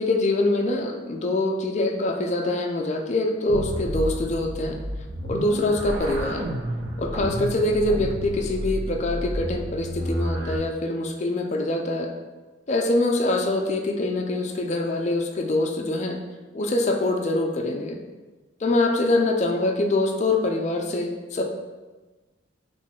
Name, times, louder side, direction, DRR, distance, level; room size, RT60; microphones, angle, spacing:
voice 1, 0.0-4.8 5.2-6.5 7.0-12.1 12.7-16.2 16.5-18.0 18.6-21.4, left 2 dB, 40° left, 3 dB, 0.4 m, -24 dB
sound 1, 3.5-10.6, equal, 85° right, 0.8 m, -30 dB
4.2 x 3.1 x 3.6 m, 1.2 s
head